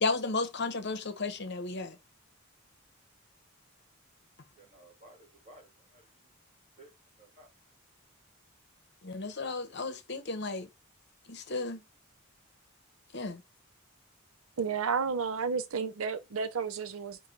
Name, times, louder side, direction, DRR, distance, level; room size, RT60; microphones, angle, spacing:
voice 1, 0.0-2.0 9.0-10.7 11.3-11.8 13.1-13.4, left 3 dB, 50° left, 0.8 m, -33 dB
voice 2, 4.6-6.4 6.8-7.5, right 1 dB, 35° right, 2.3 m, -57 dB
voice 3, 14.6-17.2, right 5 dB, 70° right, 0.5 m, -31 dB
5.2 x 2.2 x 4.4 m
head